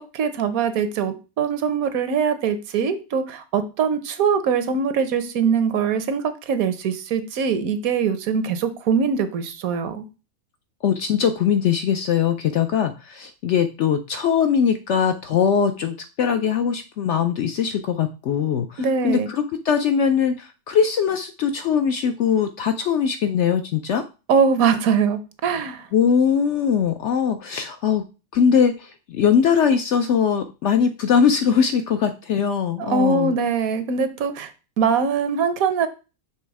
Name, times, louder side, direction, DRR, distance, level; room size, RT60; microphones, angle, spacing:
voice 1, 0.1-10.1 18.8-19.3 24.3-25.9 32.8-34.5 34.8-35.9, right 6 dB, 70° right, 10 dB, 1.1 m, -22 dB
voice 2, 10.8-24.0 25.9-28.0 28.3-33.3, left 7 dB, 65° left, 8 dB, 0.7 m, -21 dB
6.2 x 3.3 x 4.6 m, 0.31 s
omnidirectional pair, 1.6 m